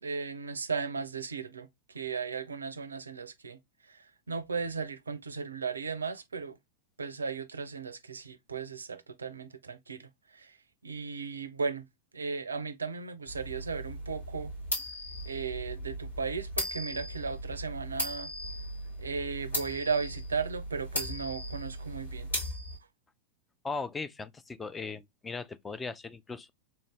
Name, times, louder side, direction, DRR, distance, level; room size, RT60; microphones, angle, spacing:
voice 1, 0.0-3.6 3.9-6.6 7.0-10.6 10.8-11.9 12.1-14.5 15.2-18.3 19.0-22.3, right 5 dB, 75° right, 0.4 m, -36 dB
sound 1, 13.3-22.8, equal, 80° left, 2.2 m, -37 dB
voice 2, 23.6-26.5, left 4 dB, 15° left, 0.3 m, -38 dB
3.3 x 2.6 x 3.0 m
figure-of-eight pair, 90°, 0 cm